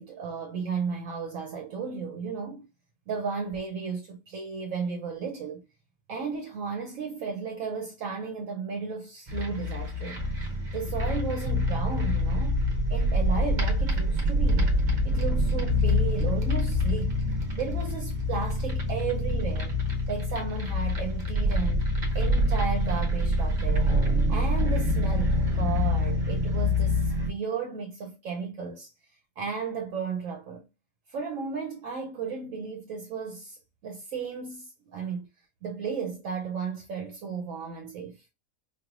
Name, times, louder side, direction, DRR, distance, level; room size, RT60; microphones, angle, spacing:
voice 1, 0.0-2.7 3.1-5.6 6.1-10.2 10.7-12.6 12.9-14.7 15.0-17.1 17.6-19.8 20.1-21.8 22.1-23.9 24.3-28.9 29.4-30.7 31.1-35.3 35.6-38.2, right 5 dB, 65° right, 1.0 m, -34 dB
sound 1, 9.3-27.3, left 1 dB, 35° right, 0.9 m, -26 dB
4.7 x 3.1 x 2.4 m
omnidirectional pair, 1.5 m